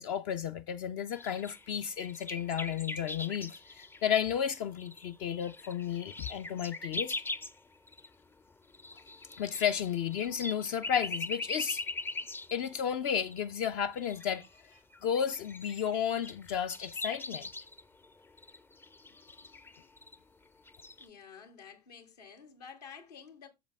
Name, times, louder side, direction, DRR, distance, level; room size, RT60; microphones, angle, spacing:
voice 1, 0.0-7.2 9.4-11.8 12.5-14.5 15.0-17.5, left 8 dB, 50° left, 0.6 m, -33 dB
sound 1, 1.1-7.6 7.9-8.1 8.4-12.9 13.2-13.6 13.9-20.2 20.7-21.1, left 2 dB, 10° left, 0.5 m, -42 dB
voice 2, 21.0-23.5, left 6 dB, 75° left, 1.8 m, -50 dB
7.2 x 6.8 x 3.4 m
figure-of-eight pair, 75°, 21 cm